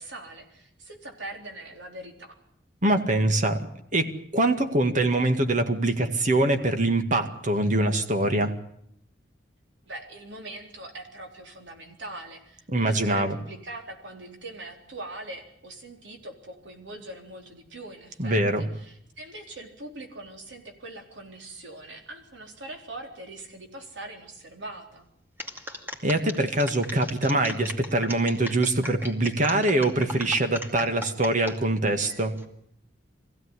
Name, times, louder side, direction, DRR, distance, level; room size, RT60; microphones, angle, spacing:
voice 1, 0.0-2.4 9.8-25.1, right 2 dB, 90° right, 3 dB, 3.8 m, -42 dB
voice 2, 2.8-3.7 3.9-8.5 12.7-13.4 18.2-18.7 26.0-32.4, right 2 dB, 45° right, 7 dB, 2.0 m, -24 dB
sound 1, 25.4-31.6 32.0-32.4, left 1 dB, 10° right, 2.4 m, -37 dB
23.0 x 16.0 x 9.8 m, 0.72 s
head